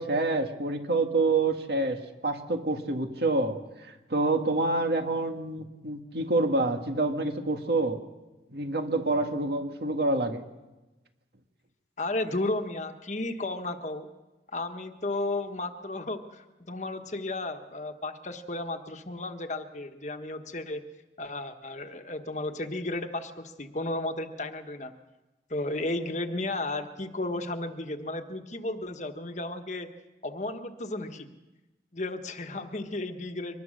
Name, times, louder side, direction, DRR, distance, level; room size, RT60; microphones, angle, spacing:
voice 1, 0.0-8.0 8.5-10.4, right 2 dB, 65° right, 5 dB, 1.9 m, -27 dB
voice 2, 12.0-14.1 14.5-20.8 21.2-24.9 25.5-29.9 30.2-31.3 31.9-33.6, left 2 dB, 40° left, 7 dB, 1.4 m, -33 dB
24.5 x 20.0 x 6.6 m, 1.1 s
head